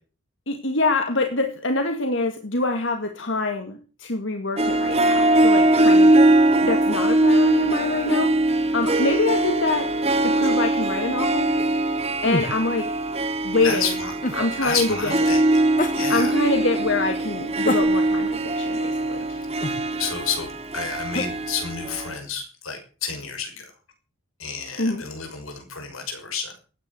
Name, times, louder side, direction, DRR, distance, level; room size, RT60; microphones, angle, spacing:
voice 1, 0.5-6.2 6.6-8.3 8.7-9.9 10.2-11.6 12.2-12.9 13.4-14.0 14.3-15.3 16.1-19.3 24.8-25.0, left 2 dB, 65° left, 6 dB, 2.0 m, -25 dB
Harp, 4.6-22.2, right 1 dB, 30° right, 1.8 m, -21 dB
sound 1, 12.2-12.5 14.2-14.4 15.8-16.0 17.6-18.3 19.6-19.8 21.1-21.3, left 2 dB, 40° left, 1.6 m, -27 dB
voice 2, 13.6-14.1 14.6-15.6 15.9-16.3 19.3-19.5 20.0-20.5 20.7-23.5 24.4-26.6, left 6 dB, 90° left, 5 dB, 6.2 m, -30 dB
15.0 x 10.0 x 7.8 m, 0.38 s
head